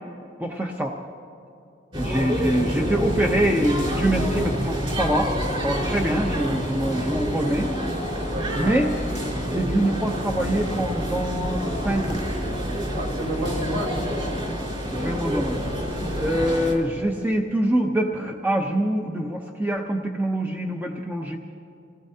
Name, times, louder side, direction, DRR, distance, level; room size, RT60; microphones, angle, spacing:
voice 1, 0.4-0.9 2.0-5.3 5.6-7.7 8.6-8.9 9.3-12.2 14.9-15.6 16.2-21.4, right 1 dB, 10° right, 1 dB, 0.7 m, -25 dB
sound 1, 1.9-16.7, equal, 35° right, 4.6 m, -27 dB
voice 2, 8.3-8.8 12.9-14.0 15.0-15.2 15.9-16.2, equal, 50° right, -3 dB, 4.3 m, -31 dB
26.5 x 18.5 x 2.8 m, 2.8 s
head